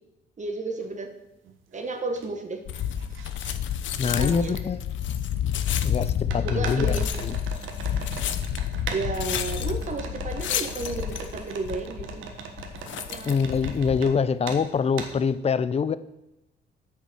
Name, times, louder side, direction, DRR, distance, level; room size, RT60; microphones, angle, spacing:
voice 1, 0.4-1.1 1.7-2.6 3.9-4.6 6.4-7.1 8.9-12.2 13.1-13.4, right 3 dB, 35° right, 6 dB, 1.2 m, -32 dB
sound 1, 0.8-0.9 1.4-2.3 2.5-3.5 4.6-4.7 6.3-14.1 14.4-14.6 15.0-15.1, right 6 dB, 80° right, 1.4 m, -39 dB
sound 2, 2.6-14.0, left 9 dB, 70° left, 0.8 m, -29 dB
voice 2, 4.0-4.8 5.8-7.4 13.3-16.0, left 6 dB, 30° left, 16 dB, 0.5 m, -25 dB
9.8 x 5.3 x 7.7 m, 0.92 s
cardioid pair, 90°, 20 cm